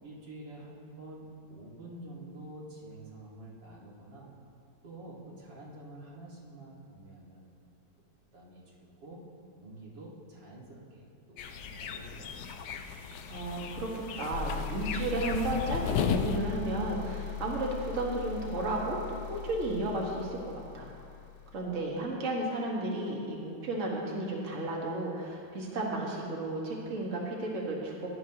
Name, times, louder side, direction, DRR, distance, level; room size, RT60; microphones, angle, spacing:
voice 1, 0.0-4.3 4.8-7.4 8.3-12.4, right 1 dB, 75° right, -5 dB, 2.6 m, -48 dB
sound 1, 11.4-16.4, left 7 dB, 70° left, 1.2 m, -35 dB
voice 2, 13.3-19.0 19.3-20.9 21.5-28.1, right 2 dB, 45° right, -2 dB, 1.8 m, -33 dB
sound 2, 14.3-21.8, left 8 dB, 90° left, 0.6 m, -40 dB
17.0 x 11.0 x 2.9 m, 2.5 s
omnidirectional pair, 2.0 m